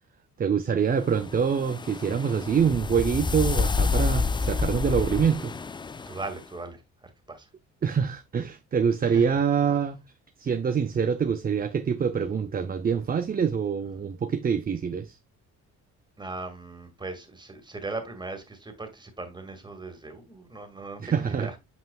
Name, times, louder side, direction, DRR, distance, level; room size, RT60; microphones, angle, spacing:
voice 1, 0.4-5.5 7.8-10.0 10.4-15.2 21.0-21.5, right 7 dB, 30° right, 0.6 m, -25 dB
sound 1, 1.1-6.4, left 4 dB, 15° left, 0.3 m, -28 dB
voice 2, 6.1-6.8 7.3-7.5 9.0-9.4 16.2-21.5, right 3 dB, 15° right, 2.0 m, -38 dB
8.1 x 5.6 x 2.3 m
cardioid pair, 90°, 30 cm